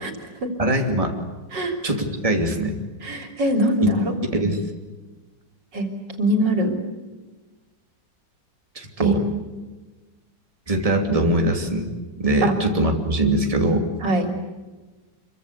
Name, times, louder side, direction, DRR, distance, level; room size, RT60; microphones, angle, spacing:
voice 1, 0.6-1.1 1.8-2.8 3.8-3.9 4.3-4.6 8.7-9.2 10.7-11.9 12.2-13.9, right 1 dB, 20° right, 3 dB, 2.9 m, -22 dB
voice 2, 3.0-4.1 5.7-5.9 6.2-6.7 9.0-9.4 12.4-12.5 14.0-14.2, right 1 dB, 80° right, 5 dB, 3.9 m, -22 dB
27.5 x 23.5 x 8.4 m, 1.2 s
omnidirectional pair, 1.9 m